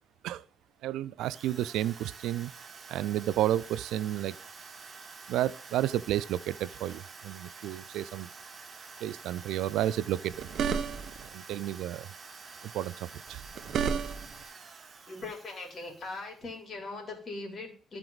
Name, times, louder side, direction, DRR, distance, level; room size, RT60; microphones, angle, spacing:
voice 1, 0.8-2.5 2.9-4.4 5.3-8.3 9.0-10.5 11.3-12.1 12.7-13.4, right 12 dB, 90° right, 0.3 m, -31 dB
Drill, 1.2-16.4, right 4 dB, 40° right, 1.1 m, -48 dB
sound 1, 10.3-11.3 13.3-14.4, right 6 dB, 65° right, 0.7 m, -31 dB
voice 2, 15.1-18.0, left 3 dB, 40° left, 3.1 m, -40 dB
13.0 x 4.6 x 3.9 m
cardioid pair, 90°, 0 cm